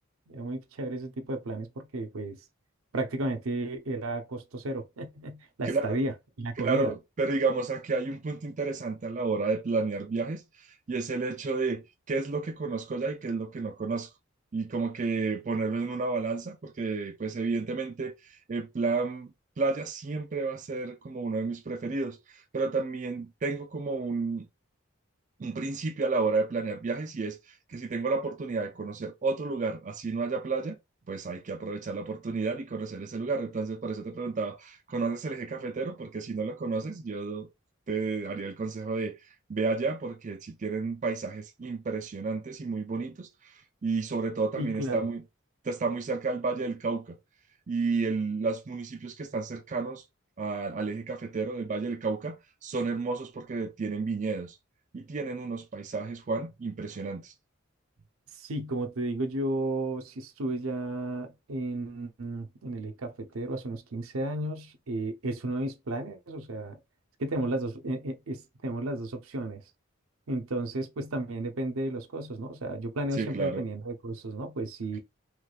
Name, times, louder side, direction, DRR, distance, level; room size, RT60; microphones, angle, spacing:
voice 1, 0.3-2.4 2.9-6.1 6.4-6.9 44.5-45.1 58.3-66.8 67.2-69.6 70.3-75.0, right 1 dB, 80° right, 0.7 m, -33 dB
voice 2, 6.6-14.1 14.5-24.5 25.4-30.8 31.1-37.5 37.9-39.1 39.5-43.5 43.8-45.2 45.6-47.1 47.7-50.0 50.4-52.4 52.6-54.6 54.9-57.3 73.2-73.6, right 4 dB, 35° right, 0.4 m, -31 dB
3.3 x 3.2 x 2.3 m
head